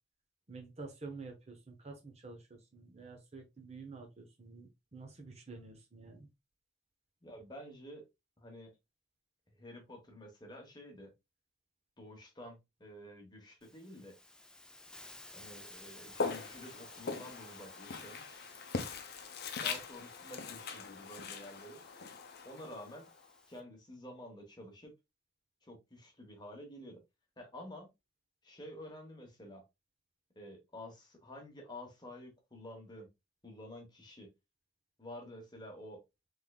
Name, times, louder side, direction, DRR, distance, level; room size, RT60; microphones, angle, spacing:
voice 1, 0.5-6.3, right 3 dB, 35° right, 0.7 m, -49 dB
voice 2, 7.2-8.0 8.4-8.7 9.5-11.1 12.0-14.2 15.3-18.4 19.6-21.8 22.4-23.1 23.5-24.9 25.6-27.0 27.4-27.9 28.4-29.6 30.4-33.1 33.4-34.3 35.0-36.0, left 1 dB, 25° left, 1.0 m, -50 dB
Hiss, 13.6-23.6, left 2 dB, 5° left, 0.3 m, -56 dB
Walk footsteps, 16.1-23.2, left 4 dB, 55° left, 0.6 m, -41 dB
3.6 x 3.2 x 2.3 m
head